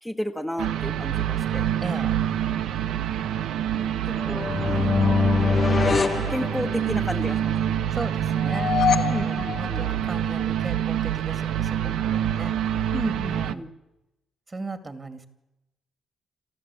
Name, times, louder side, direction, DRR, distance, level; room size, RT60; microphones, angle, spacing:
voice 1, 0.0-1.7 3.7-5.2 5.8-7.7 9.1-9.8 12.9-13.7, equal, ahead, 2 dB, 1.4 m, -33 dB
sound 1, 0.6-13.5, right 10 dB, 80° right, 0.9 m, -26 dB
voice 2, 1.8-2.1 7.9-12.6 13.3-13.7 14.5-15.3, right 3 dB, 25° right, 10 dB, 2.5 m, -36 dB
sound 2, 4.2-7.2, left 4 dB, 35° left, 0.8 m, -24 dB
sound 3, 8.3-10.6, left 8 dB, 65° left, 1.3 m, -27 dB
28.0 x 13.5 x 8.6 m, 0.95 s
cardioid pair, 90°, 0 cm